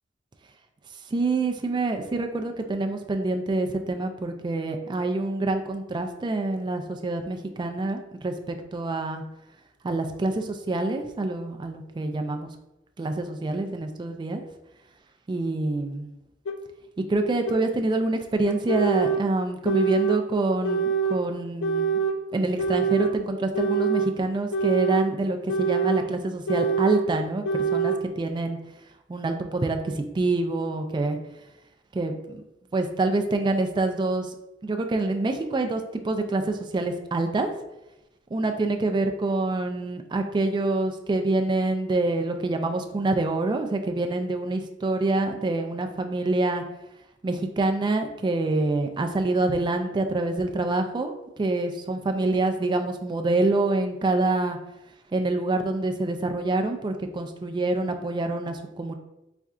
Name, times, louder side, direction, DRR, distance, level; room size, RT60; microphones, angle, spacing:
voice 1, 1.1-9.2 9.8-12.5 13.0-14.4 15.3-16.1 17.1-22.0 22.3-28.6 29.1-31.2 31.9-32.4 32.7-34.4 34.6-37.5 38.3-46.6 47.2-54.6 55.1-58.9, right 2 dB, 25° right, 5 dB, 0.3 m, -26 dB
sound 1, 16.5-16.6 17.5-17.6 18.5-19.2 19.6-20.2 20.6-21.2 21.6-22.2 22.6-23.1 23.5-24.1 24.5-25.1 25.5-26.0 26.5-27.0 27.4-28.0, right 5 dB, 70° left, 0.4 m, -25 dB
4.2 x 2.3 x 3.6 m, 0.92 s
head